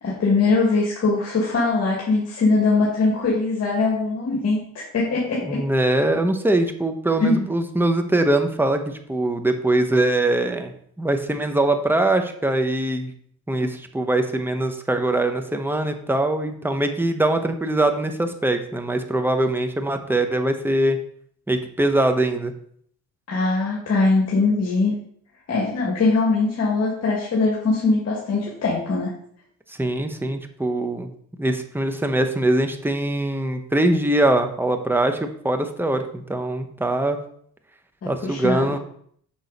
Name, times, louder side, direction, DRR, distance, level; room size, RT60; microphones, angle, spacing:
voice 1, 0.0-5.6 7.2-7.5 23.3-24.9 25.5-29.1 38.0-38.8, left 3 dB, 55° left, -4 dB, 2.2 m, -21 dB
voice 2, 5.4-13.1 13.5-21.0 21.5-22.5 29.7-31.1 31.4-37.2 38.0-38.8, right 1 dB, 5° right, 6 dB, 0.9 m, -22 dB
6.3 x 6.3 x 4.2 m, 0.63 s
cardioid pair, 90°, 30 cm